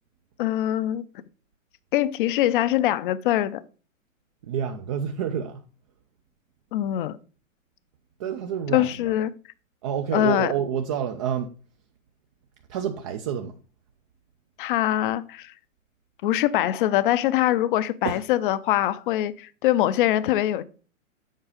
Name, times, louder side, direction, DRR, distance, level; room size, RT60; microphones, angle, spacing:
voice 1, 0.4-1.1 1.9-3.6 6.7-7.2 8.7-9.3 10.1-10.5 14.6-15.5 16.2-20.6, left 13 dB, 40° left, 0.6 m, -23 dB
voice 2, 4.5-5.6 8.2-9.1 9.8-11.5 12.7-13.5 18.0-18.2, right 8 dB, 25° right, 0.4 m, -28 dB
7.4 x 4.6 x 5.0 m
hypercardioid pair, 135°, 40 cm